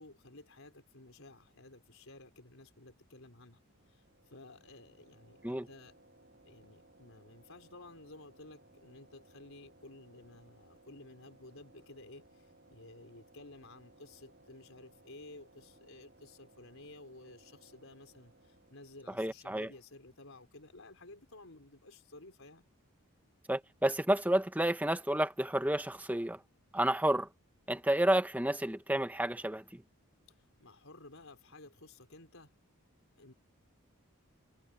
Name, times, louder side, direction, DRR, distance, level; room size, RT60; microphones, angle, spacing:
voice 1, 0.0-3.6 3.9-6.0 6.4-22.6 30.3-32.5 33.2-33.3, left 2 dB, 65° left, 4.6 m, -54 dB
sound 1, 3.7-19.7, right 2 dB, 45° right, 7.9 m, -63 dB
voice 2, 19.2-19.7 23.5-26.4 26.7-27.3 27.7-29.8, right 1 dB, 5° right, 0.9 m, -30 dB
head